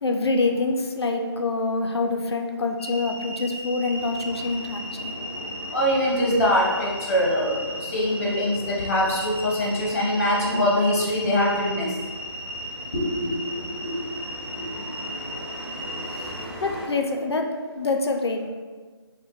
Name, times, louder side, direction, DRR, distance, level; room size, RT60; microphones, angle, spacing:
voice 1, 0.0-5.1 16.6-18.5, left 3 dB, 65° left, 3 dB, 0.4 m, -26 dB
sound 1, 2.8-16.4, equal, 20° right, 0.9 m, -36 dB
sound 2, 3.9-16.9, equal, ahead, 1.2 m, -41 dB
voice 2, 5.7-11.9 12.9-13.9, left 1 dB, 35° left, -4 dB, 0.8 m, -23 dB
4.1 x 2.1 x 3.0 m, 1.5 s
figure-of-eight pair, 170°, 15 cm